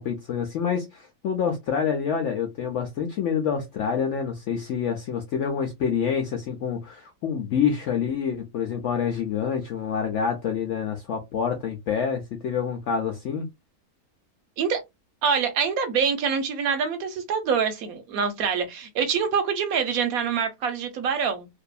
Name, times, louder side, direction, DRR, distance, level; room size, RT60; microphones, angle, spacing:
voice 1, 0.0-13.5, left 7 dB, 75° left, 0.7 m, -27 dB
voice 2, 15.2-21.5, right 6 dB, 70° right, 1.0 m, -25 dB
2.6 x 2.3 x 2.2 m
omnidirectional pair, 1.7 m